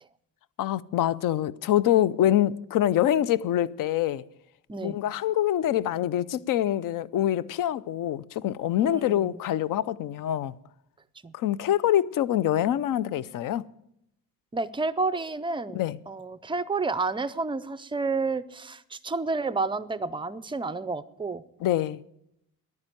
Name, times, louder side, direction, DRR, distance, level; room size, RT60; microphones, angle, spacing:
voice 1, 0.6-4.2 4.8-10.5 11.3-13.7 15.7-16.0 21.6-22.0, left 12 dB, 60° left, 0.5 m, -25 dB
voice 2, 8.8-9.4 11.2-11.3 14.5-15.8 16.1-21.4, right 3 dB, 15° right, 0.4 m, -30 dB
11.0 x 9.6 x 9.0 m
cardioid pair, 160°, 36 cm